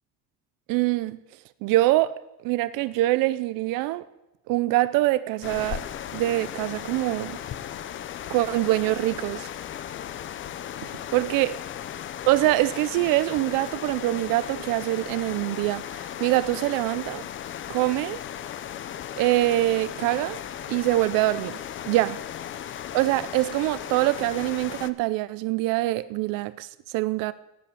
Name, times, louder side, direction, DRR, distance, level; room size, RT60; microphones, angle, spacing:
voice 1, 0.7-1.2 1.6-4.1 4.5-5.8 6.1-7.4 8.3-9.5 11.1-11.5 12.3-17.3 17.7-18.2 19.2-20.4 20.7-21.6 21.9-22.2 22.9-27.3, right 17 dB, 75° right, 0.6 m, -24 dB
sound 1, 5.4-24.9, left 10 dB, 35° left, 0.6 m, -36 dB
13.5 x 10.0 x 8.4 m
cardioid pair, 155°, 33 cm